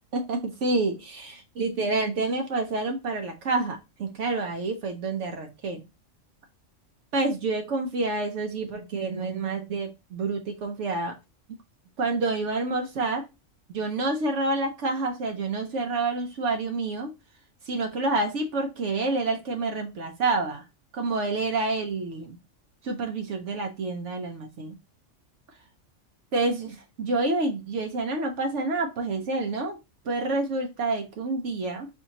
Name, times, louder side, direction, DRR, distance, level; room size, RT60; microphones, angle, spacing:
voice 1, 0.1-5.8 7.1-11.1 11.5-11.6 12.0-13.2 13.7-17.1 17.7-20.6 20.9-22.4 22.8-24.7 26.3-29.8 30.0-31.9, right 3 dB, 70° right, 4 dB, 1.1 m, -28 dB
4.5 x 3.5 x 2.7 m, 0.24 s
omnidirectional pair, 1.3 m